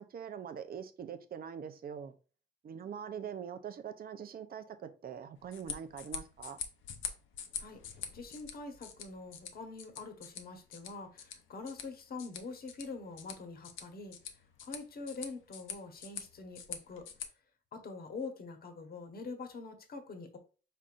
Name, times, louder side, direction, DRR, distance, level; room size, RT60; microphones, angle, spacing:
voice 1, 0.0-2.1 2.6-6.6, right 8 dB, 50° right, 0.7 m, -43 dB
sound 1, 5.4-17.3, left 7 dB, 80° left, 0.8 m, -46 dB
voice 2, 7.6-14.2 14.6-17.1 17.7-20.4, left 3 dB, 50° left, 1.2 m, -45 dB
5.4 x 3.8 x 2.5 m
cardioid pair, 90°, 20 cm